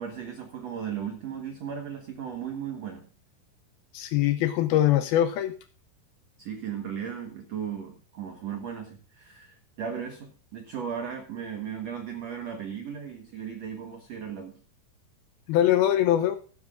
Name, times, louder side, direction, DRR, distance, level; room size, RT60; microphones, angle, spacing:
voice 1, 0.0-3.0 6.4-14.6, right 8 dB, 65° right, 3 dB, 1.7 m, -36 dB
voice 2, 3.9-5.5 15.5-16.4, left 12 dB, 80° left, 9 dB, 2.3 m, -22 dB
15.5 x 12.5 x 2.5 m, 0.38 s
omnidirectional pair, 4.9 m